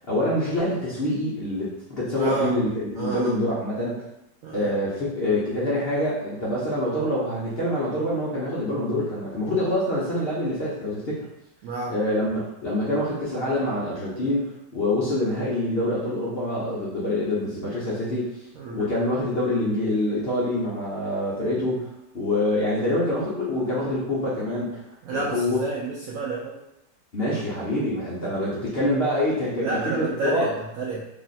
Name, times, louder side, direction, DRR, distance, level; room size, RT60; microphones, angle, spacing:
voice 1, 0.1-4.1 4.5-11.2 11.9-18.3 18.7-21.9 22.1-24.8 25.1-25.6 27.1-30.5, left 1 dB, 50° left, -8 dB, 0.7 m, -26 dB
voice 2, 2.2-2.6 3.0-3.3 4.4-4.7 11.6-12.0 18.6-18.9 25.0-26.6 29.6-31.1, right 4 dB, 75° right, -4 dB, 0.8 m, -30 dB
3.1 x 2.4 x 4.0 m, 0.86 s
omnidirectional pair, 1.9 m